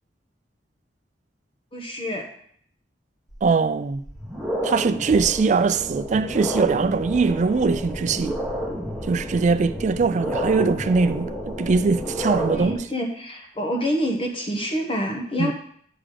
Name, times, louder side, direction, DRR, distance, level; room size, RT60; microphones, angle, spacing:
voice 1, 1.7-2.3 12.5-15.5, equal, 30° left, 0.9 m, -27 dB
sound 1, 3.3-3.4 3.9-12.7, equal, ahead, 1.2 m, -30 dB
voice 2, 3.4-4.0 4.6-8.4 9.1-12.8 15.4-15.5, right 4 dB, 45° right, 0.3 m, -21 dB
9.9 x 3.9 x 4.9 m
head